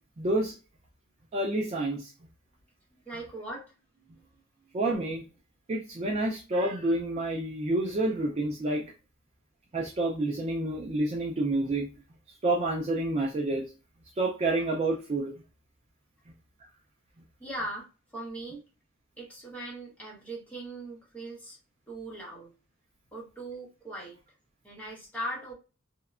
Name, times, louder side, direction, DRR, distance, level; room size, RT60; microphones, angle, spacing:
voice 1, 0.2-0.5 1.3-2.1 4.7-5.2 5.7-8.9 9.7-11.9 12.4-13.7 14.2-15.3, right 2 dB, 30° right, 0 dB, 0.4 m, -28 dB
voice 2, 2.9-4.8 17.4-18.6 19.2-21.6 21.9-22.5 23.1-24.2 24.6-25.5, right 1 dB, 5° left, -3 dB, 1.0 m, -40 dB
2.8 x 2.1 x 2.3 m, 0.31 s
head